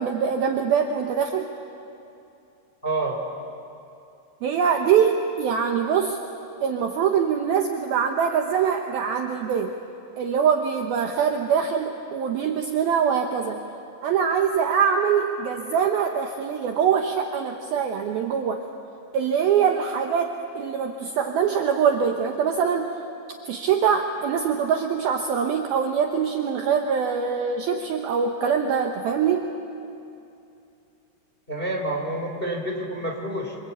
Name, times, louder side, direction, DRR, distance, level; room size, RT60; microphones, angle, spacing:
voice 1, 0.0-1.5 4.4-6.2 6.6-9.7 10.2-13.6 14.0-18.6 19.1-22.9 23.5-29.5, right 7 dB, 70° right, 3 dB, 2.4 m, -23 dB
voice 2, 2.8-3.2 31.5-33.6, right 1 dB, 15° left, 0 dB, 3.0 m, -28 dB
28.0 x 25.5 x 8.4 m, 2.7 s
omnidirectional pair, 5.5 m